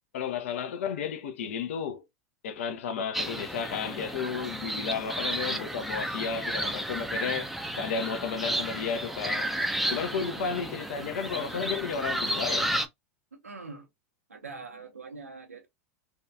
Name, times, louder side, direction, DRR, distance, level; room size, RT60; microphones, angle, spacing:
voice 1, 0.1-2.0 2.4-9.5 9.9-12.7, left 6 dB, 65° left, 0.5 m, -33 dB
sound 1, 3.1-12.9, right 1 dB, ahead, 0.4 m, -32 dB
voice 2, 9.8-10.4 13.3-13.9 14.3-15.7, right 4 dB, 90° right, 0.6 m, -44 dB
2.6 x 2.2 x 2.3 m
figure-of-eight pair, 90°, 8 cm